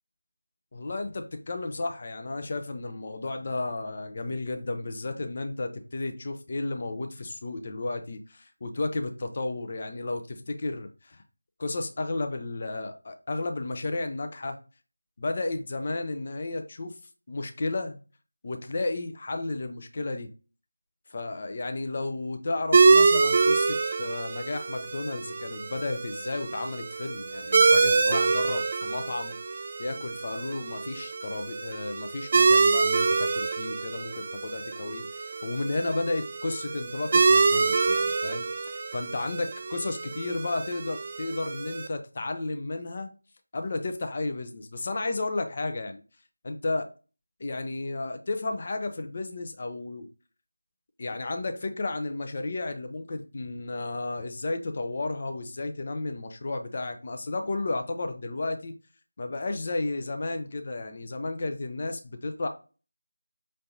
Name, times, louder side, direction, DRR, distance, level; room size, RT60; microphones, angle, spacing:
voice 1, 0.7-11.2 11.6-14.6 15.2-17.0 17.3-18.0 18.4-20.3 21.1-29.4 29.8-43.1 43.5-46.0 46.4-46.9 47.4-50.1 51.0-58.8 59.2-62.5, left 2 dB, 35° left, 6 dB, 0.6 m, -33 dB
sound 1, 22.7-41.9, right 4 dB, 30° right, 0.3 m, -25 dB
5.6 x 3.3 x 2.7 m, 0.34 s
figure-of-eight pair, 165°, 0 cm